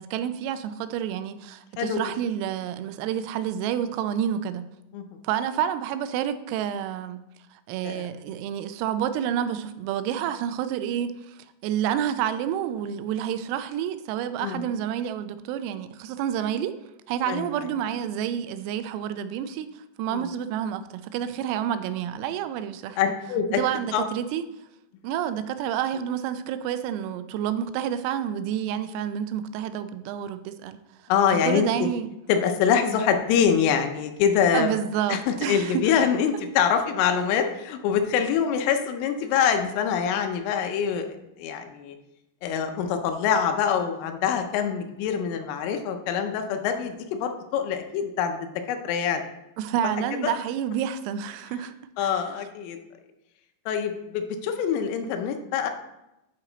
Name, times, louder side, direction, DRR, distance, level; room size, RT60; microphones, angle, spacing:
voice 1, 0.0-4.7 5.2-7.2 7.5-16.7 17.1-23.0 23.5-24.4 25.0-30.8 31.4-32.1 34.5-35.9 49.6-51.7 52.0-52.2, right 9 dB, 90° right, 11 dB, 3.3 m, -29 dB
voice 2, 23.0-23.6 23.9-24.0 31.1-31.9 32.3-34.7 35.1-42.0 42.4-49.2 50.2-50.3 52.0-52.8 53.7-55.7, left 7 dB, 80° left, 6 dB, 3.2 m, -25 dB
9.0 x 5.8 x 3.9 m, 0.90 s
omnidirectional pair, 5.8 m